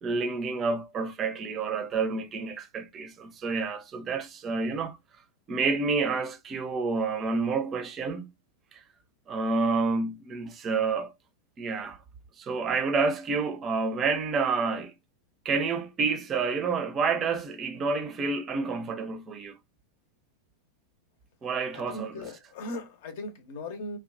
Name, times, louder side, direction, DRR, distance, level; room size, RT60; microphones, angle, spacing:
voice 1, 0.0-5.0 5.5-8.3 8.7-8.8 9.3-11.1 11.6-12.0 12.4-14.9 15.4-19.5 21.4-22.3, right 4 dB, 25° right, 0.5 m, -29 dB
voice 2, 21.7-24.0, left 1 dB, 50° left, 0.7 m, -38 dB
2.8 x 2.3 x 2.5 m
figure-of-eight pair, 90°, 0 cm